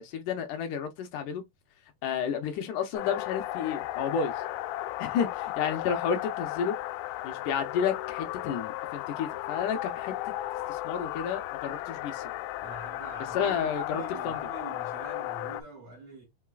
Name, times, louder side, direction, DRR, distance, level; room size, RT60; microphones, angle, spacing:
voice 1, 0.0-1.4 2.0-4.3 5.0-6.8 7.2-10.1 10.7-12.3 13.3-14.4, left 7 dB, 75° left, 2.1 m, -31 dB
sound 1, 2.9-15.6, left 15 dB, 90° left, 2.4 m, -35 dB
voice 2, 12.6-16.3, right 3 dB, 45° right, 2.8 m, -44 dB
5.5 x 3.6 x 2.3 m
omnidirectional pair, 4.1 m